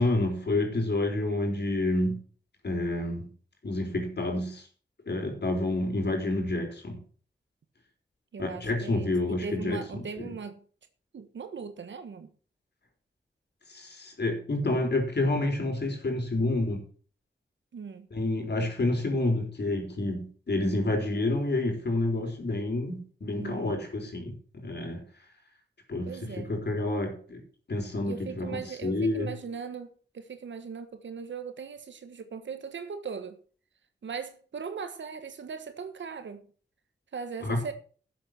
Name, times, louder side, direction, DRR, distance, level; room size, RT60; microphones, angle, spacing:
voice 1, 0.0-2.2 2.6-3.3 3.6-4.7 5.1-7.0 8.4-10.3 13.7-16.8 18.1-25.0 25.9-27.4 27.7-29.3 37.4-37.6, left 2 dB, 65° left, 4.1 m, -29 dB
voice 2, 8.3-10.6 11.1-12.3 17.7-18.1 23.4-23.7 26.1-26.5 28.0-33.4 34.0-36.5 37.1-37.7, right 5 dB, 85° right, 1.4 m, -39 dB
11.5 x 7.7 x 6.0 m
cardioid pair, 40°, 19 cm